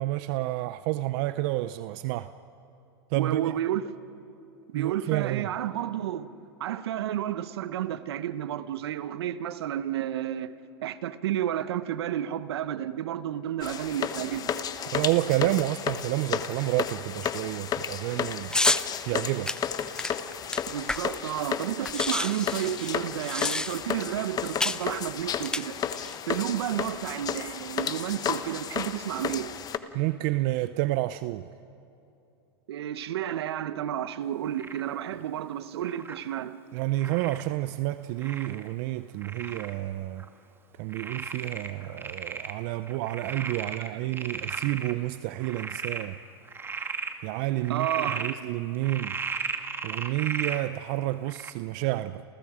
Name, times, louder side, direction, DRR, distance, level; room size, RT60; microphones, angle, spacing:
voice 1, 0.0-2.3 3.1-3.5 4.7-5.5 14.9-18.5 19.1-19.6 29.9-31.5 36.7-40.2 40.8-46.2 47.2-49.2 49.8-52.2, right 17 dB, 55° right, 0.6 m, -29 dB
voice 2, 3.1-3.9 4.7-6.3 6.6-10.5 10.8-14.6 20.7-25.8 26.3-29.6 32.7-36.6 43.6-44.4 47.7-48.3, right 11 dB, 80° right, 1.1 m, -31 dB
sound 1, 13.6-29.8, left 8 dB, 30° left, 1.2 m, -33 dB
sound 2, 18.5-18.9 19.5-21.3 21.5-21.6 21.8-24.0 24.6-24.9 25.4-26.2, left 2 dB, 5° left, 0.7 m, -29 dB
Frog, 34.6-34.9 35.8-36.2 37.0-37.4 38.2-38.7 39.2-39.7 40.2-40.3 40.9-42.6 42.9-44.9 45.4-46.1 46.5-47.1 47.6-48.3 48.8-50.6 51.3-51.5, right 5 dB, 15° right, 1.6 m, -35 dB
29.5 x 29.0 x 5.0 m
hypercardioid pair, 110°, 13 cm